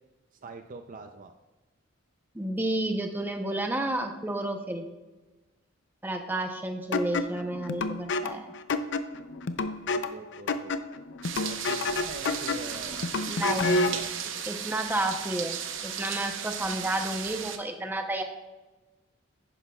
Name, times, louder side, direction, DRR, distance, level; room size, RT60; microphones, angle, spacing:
voice 1, 0.4-1.3 9.9-10.7 11.4-13.1 13.5-14.4, right 3 dB, 40° right, 7 dB, 0.4 m, -43 dB
voice 2, 2.3-4.9 6.0-8.5 13.3-14.0 14.5-15.6 15.8-18.2, right 1 dB, 10° right, 4 dB, 0.7 m, -31 dB
sound 1, 6.9-14.1, left 3 dB, 60° left, 0.5 m, -30 dB
sound 2, 11.2-17.6, right 8 dB, 65° right, 0.8 m, -36 dB
11.0 x 9.8 x 2.3 m, 1.2 s
head